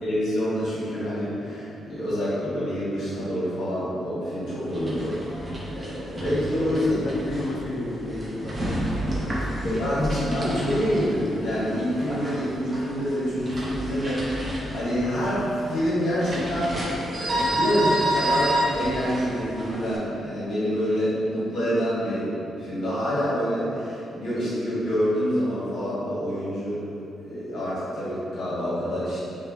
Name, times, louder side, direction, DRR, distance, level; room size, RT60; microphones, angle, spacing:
voice 1, 0.0-6.9 9.6-22.3 22.6-26.8 27.2-29.2, equal, 75° left, -10 dB, 1.0 m, -27 dB
sound 1, 4.6-20.0, equal, 25° right, 0.6 m, -30 dB
voice 2, 6.7-9.8, left 2 dB, 45° left, 0 dB, 0.3 m, -34 dB
5.2 x 2.1 x 2.5 m, 2.8 s
cardioid pair, 145°, 0 cm